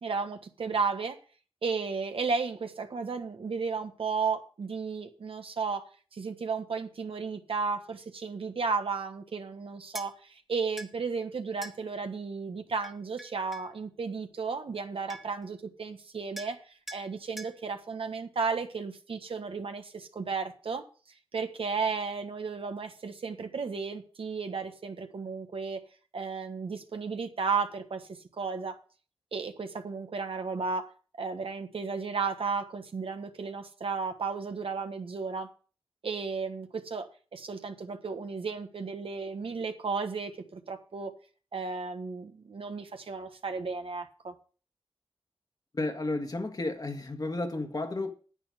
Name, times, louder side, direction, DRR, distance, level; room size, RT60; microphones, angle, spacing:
voice 1, 0.0-1.2 1.6-20.8 21.3-25.8 26.1-28.1 28.3-28.8 29.3-30.9 31.2-35.5 36.0-41.1 41.5-44.3, right 5 dB, 75° right, 1.4 m, -34 dB
sound 1, 9.9-10.1 10.8-10.9 11.6-11.8 12.8-13.7 14.8-14.9 15.1-15.4 16.4-16.6 16.9-17.1 17.4-17.6, equal, 5° right, 1.5 m, -43 dB
voice 2, 45.7-48.1, left 2 dB, 45° left, 1.6 m, -32 dB
9.9 x 9.0 x 5.1 m
wide cardioid pair, 80°, 9 cm